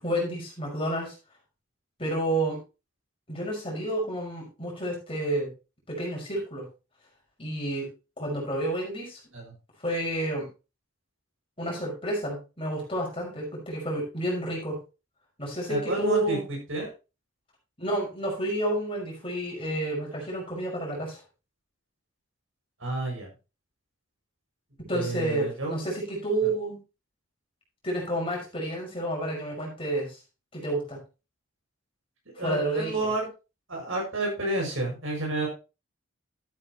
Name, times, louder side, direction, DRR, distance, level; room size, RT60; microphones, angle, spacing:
voice 1, 0.0-1.1 2.0-2.6 3.3-5.5 5.9-6.7 7.4-7.9 8.2-9.2 9.8-10.5 11.6-14.8 15.4-16.5 17.8-21.2 24.9-26.8 27.8-30.2 30.5-31.0 32.4-32.9, right 1 dB, 25° left, -2 dB, 5.6 m, -30 dB
voice 2, 15.7-16.4 16.7-16.9 22.8-23.3 24.9-25.7 32.4-33.3 33.7-35.5, right 2 dB, 70° right, -1 dB, 6.6 m, -30 dB
12.5 x 9.7 x 3.1 m, 0.30 s
head